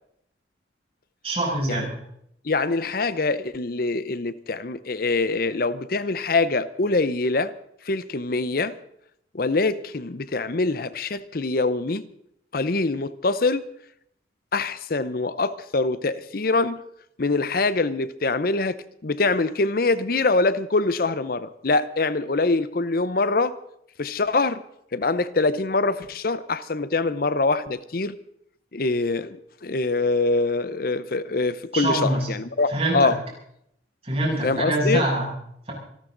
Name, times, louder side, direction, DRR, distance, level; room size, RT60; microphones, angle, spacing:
voice 1, 1.2-2.0 31.7-32.3 32.7-33.1 34.0-35.3, right 1 dB, 35° right, 7.1 m, -24 dB
voice 2, 2.4-7.5 7.8-8.8 9.3-12.1 12.5-13.7 14.5-16.8 17.2-23.6 24.0-24.6 24.9-28.2 28.7-29.4 29.6-33.2 34.4-35.1, left 3 dB, 55° left, 0.7 m, -24 dB
26.0 x 13.0 x 3.9 m
head